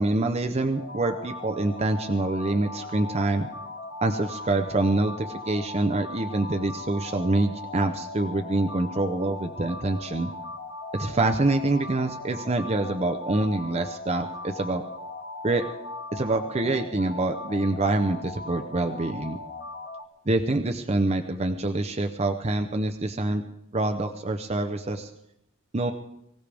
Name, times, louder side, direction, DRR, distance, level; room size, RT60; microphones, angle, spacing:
voice 1, 0.0-3.5 4.0-10.3 10.9-14.8 15.4-15.7 16.1-19.4 20.3-23.4 23.7-25.1 25.7-25.9, right 2 dB, 30° right, 5 dB, 0.7 m, -26 dB
sound 1, 0.7-20.0, left 2 dB, 50° left, 1.2 m, -39 dB
24.0 x 16.0 x 3.5 m, 0.82 s
head